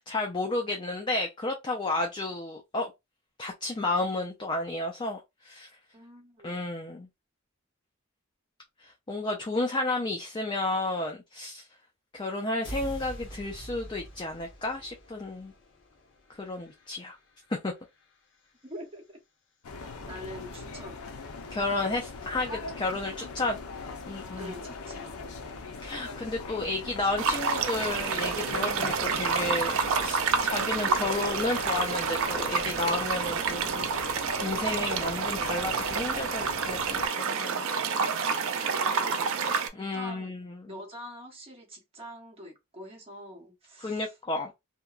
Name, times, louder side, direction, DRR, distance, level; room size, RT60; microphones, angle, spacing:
voice 1, 0.0-2.9 3.4-5.7 6.4-7.1 8.8-11.7 12.1-15.5 16.3-17.2 17.5-17.7 21.5-23.6 24.1-24.5 25.8-33.9 34.4-37.7 39.7-40.7 43.8-44.5, left 2 dB, 20° left, 0.4 m, -32 dB
voice 2, 5.9-6.6 18.6-19.2 20.0-21.0 24.4-25.2 38.7-40.3 40.7-44.1, equal, 30° right, 0.9 m, -45 dB
sound 1, 12.6-18.8, right 1 dB, 60° left, 0.9 m, -46 dB
sound 2, 19.6-37.1, left 4 dB, 85° left, 0.6 m, -41 dB
sound 3, 27.2-39.7, right 5 dB, 65° right, 0.4 m, -29 dB
2.8 x 2.2 x 2.4 m
head